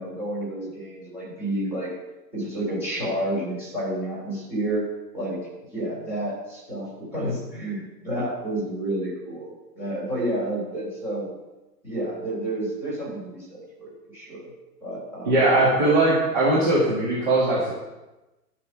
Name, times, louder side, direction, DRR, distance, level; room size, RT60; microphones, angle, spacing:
voice 1, 0.0-1.9 2.3-4.9 5.1-5.4 5.7-11.3 11.8-14.5 14.8-15.3 16.3-16.4, right 1 dB, 5° right, -9 dB, 3.5 m, -30 dB
voice 2, 15.3-17.7, right 2 dB, 30° right, -7 dB, 1.9 m, -20 dB
12.0 x 6.0 x 6.0 m, 1.0 s
hypercardioid pair, 180°, 49 cm